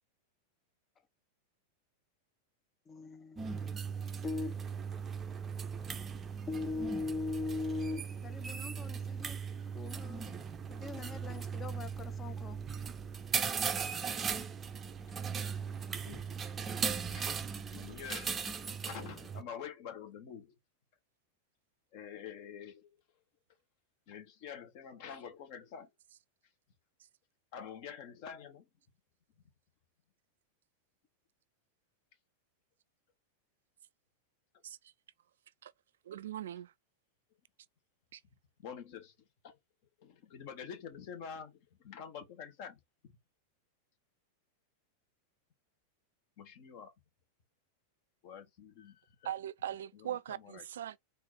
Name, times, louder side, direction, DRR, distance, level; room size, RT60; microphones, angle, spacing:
voice 1, 2.9-4.6 5.8-5.9 6.5-9.4 9.7-10.4 10.7-12.6, left 3 dB, 20° left, 0.7 m, -40 dB
sound 1, 3.4-19.4, right 6 dB, 20° right, 0.6 m, -38 dB
voice 2, 16.0-16.5 17.1-17.3 17.7-18.5 18.8-20.5 21.9-23.0 24.1-25.9 27.5-28.7 38.6-39.2 39.4-39.6 40.0-43.2 46.4-46.9 48.2-49.3 49.9-50.6, left 7 dB, 45° left, 1.3 m, -47 dB
voice 3, 36.0-36.7 38.1-38.2 49.2-51.0, right 11 dB, 60° right, 0.3 m, -40 dB
4.2 x 2.7 x 4.0 m
figure-of-eight pair, 90°, 0 cm